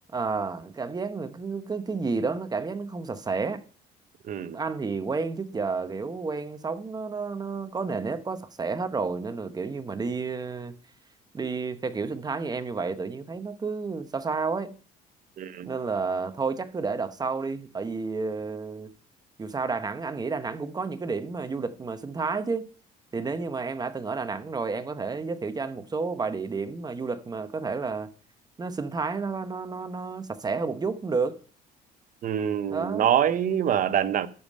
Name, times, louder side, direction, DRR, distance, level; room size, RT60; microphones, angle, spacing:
voice 1, 0.1-3.6 4.5-10.7 11.3-14.8 15.7-18.9 19.4-22.7 23.1-28.1 28.6-31.4 32.7-33.1, right 4 dB, 25° right, 0.9 m, -31 dB
voice 2, 15.4-15.7 32.2-34.3, right 9 dB, 50° right, 0.8 m, -25 dB
12.5 x 5.2 x 5.3 m
cardioid pair, 110°, 17 cm